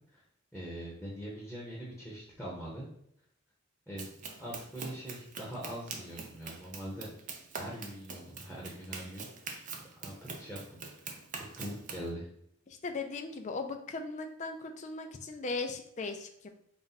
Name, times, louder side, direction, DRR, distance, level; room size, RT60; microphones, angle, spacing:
voice 1, 0.5-2.9 3.9-4.1 4.4-7.1 7.5-9.3 10.0-12.3, equal, ahead, -6 dB, 0.8 m, -42 dB
Run, 4.0-12.1, right 4 dB, 35° right, 0.4 m, -44 dB
voice 2, 12.7-16.5, left 3 dB, 30° left, 5 dB, 0.4 m, -38 dB
4.1 x 2.2 x 3.9 m, 0.70 s
head